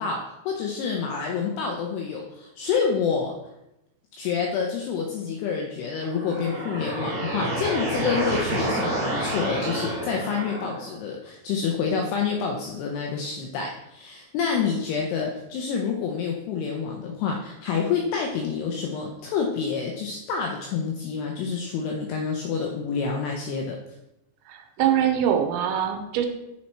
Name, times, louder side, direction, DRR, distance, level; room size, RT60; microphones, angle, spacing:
voice 1, 0.0-3.3 4.1-23.8, left 6 dB, 80° left, 1 dB, 2.5 m, -28 dB
sound 1, 6.0-10.9, right 1 dB, 35° right, 3.3 m, -29 dB
voice 2, 24.5-26.3, right 9 dB, 90° right, 5 dB, 3.1 m, -23 dB
10.5 x 4.5 x 4.3 m, 0.89 s
omnidirectional pair, 5.3 m